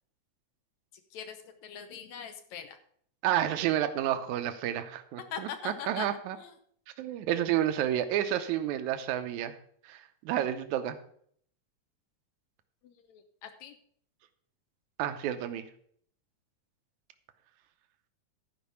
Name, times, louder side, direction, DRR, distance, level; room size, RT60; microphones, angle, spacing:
voice 1, 1.1-2.8 5.3-6.1 6.3-6.5 12.8-13.8, left 8 dB, 75° left, 7 dB, 2.1 m, -42 dB
voice 2, 3.2-6.4 7.0-9.6 9.8-11.0 15.0-15.7, right 11 dB, 80° right, 9 dB, 2.2 m, -30 dB
12.0 x 5.2 x 6.9 m, 0.62 s
omnidirectional pair, 3.4 m